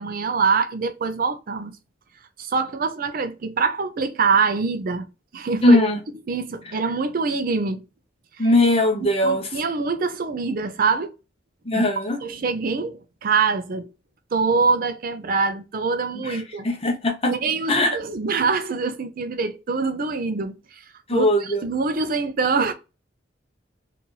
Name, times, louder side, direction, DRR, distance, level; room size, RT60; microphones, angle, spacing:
voice 1, 0.0-1.7 2.4-5.0 5.3-5.8 6.3-7.8 8.4-8.5 9.2-11.1 11.7-11.8 12.2-13.9 14.3-16.7 17.3-20.8 21.1-22.7, right 4 dB, 50° right, 0.5 m, -24 dB
voice 2, 5.6-6.0 8.4-9.5 11.7-12.2 16.3-16.4 16.6-17.3 17.7-18.0 21.1-21.6, left 1 dB, 35° left, 0.8 m, -19 dB
2.8 x 2.5 x 3.8 m
head